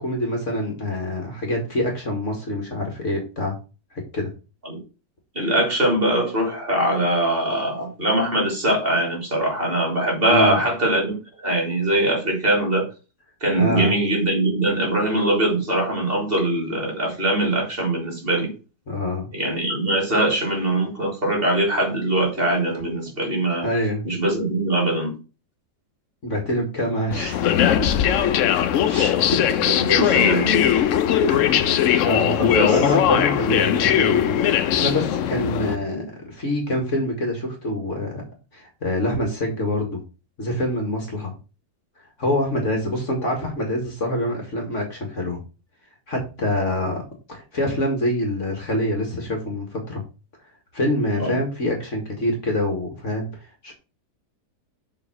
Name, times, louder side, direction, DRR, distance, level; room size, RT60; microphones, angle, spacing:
voice 1, 0.0-3.5 3.9-4.3 10.3-10.6 13.6-13.9 18.9-19.3 23.6-24.1 26.2-27.9 28.8-29.5 30.0-38.2 38.5-40.0 40.4-41.3 42.2-45.4 46.1-47.0 47.3-50.0 50.7-53.3 53.6-53.7, left 1 dB, 45° left, 2 dB, 2.0 m, -26 dB
voice 2, 5.3-12.9 13.4-18.5 19.3-23.7 24.0-25.2 29.6-30.5 32.4-32.8 35.9-36.0 51.2-51.4, right 1 dB, 35° right, 1 dB, 3.0 m, -22 dB
sound 1, 27.1-35.8, left 10 dB, 65° left, 0.8 m, -20 dB
7.0 x 4.2 x 6.1 m, 0.32 s
omnidirectional pair, 1.8 m